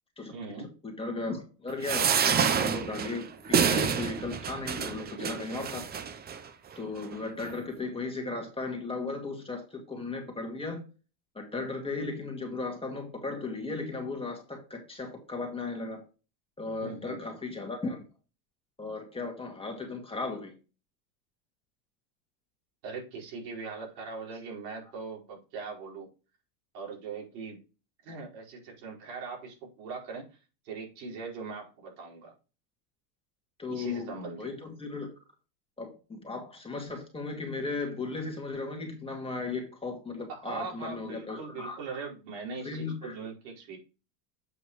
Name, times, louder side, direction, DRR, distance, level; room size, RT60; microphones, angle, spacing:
voice 1, 0.3-0.7 16.8-17.2 22.8-26.1 26.7-27.6 28.0-30.4 30.6-32.3 33.7-34.5 40.3-43.8, right 4 dB, 80° right, 4.7 m, -40 dB
voice 2, 0.8-5.8 6.8-10.8 11.3-16.0 16.6-18.0 18.8-20.5 24.0-24.1 33.6-35.1 35.8-42.0 42.6-43.1, left 3 dB, 10° left, 2.1 m, -36 dB
sound 1, 1.8-6.4 7.0-7.1 7.4-7.5, right 7 dB, 20° right, 0.6 m, -28 dB
7.9 x 5.8 x 3.1 m
supercardioid pair, 130°, 49 cm